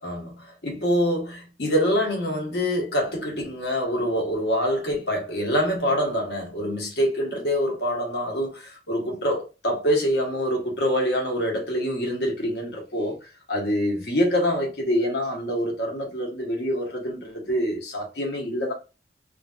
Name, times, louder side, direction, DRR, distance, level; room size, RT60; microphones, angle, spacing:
voice 1, 0.0-18.7, equal, 70° left, 1.1 m, -25 dB
3.3 x 2.6 x 2.3 m
head